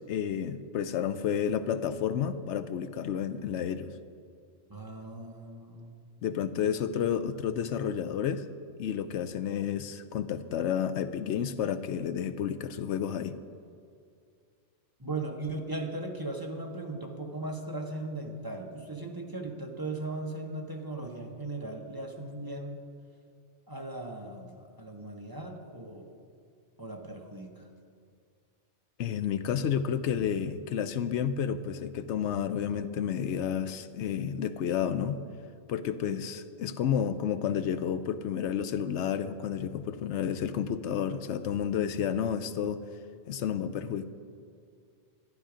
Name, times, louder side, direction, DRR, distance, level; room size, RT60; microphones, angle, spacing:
voice 1, 0.0-3.9 6.2-8.4 8.8-13.4 29.0-35.2 35.7-42.8 43.3-44.1, left 8 dB, 80° left, 12 dB, 0.9 m, -31 dB
voice 2, 4.7-5.9 15.0-22.8 23.7-26.1 26.8-27.7 36.0-36.2, right 2 dB, 20° right, 1 dB, 1.0 m, -38 dB
12.0 x 12.0 x 5.0 m, 2.3 s
omnidirectional pair, 1.2 m